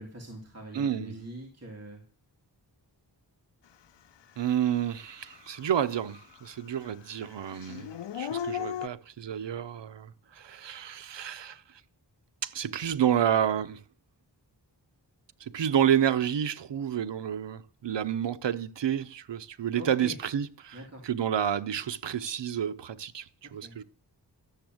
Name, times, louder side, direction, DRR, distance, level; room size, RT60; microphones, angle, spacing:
voice 1, 0.0-2.0 19.7-20.1 20.7-21.1 23.4-23.7, right 2 dB, 35° right, 3.1 m, -43 dB
voice 2, 0.7-1.1 4.4-11.6 12.4-13.8 15.4-20.8 21.0-23.8, right 9 dB, 80° right, 0.7 m, -29 dB
Dog / Siren, 4.5-4.6 5.1-6.5 6.8-8.9, left 9 dB, 75° left, 0.6 m, -36 dB
12.0 x 7.1 x 7.8 m
wide cardioid pair, 70°, 43 cm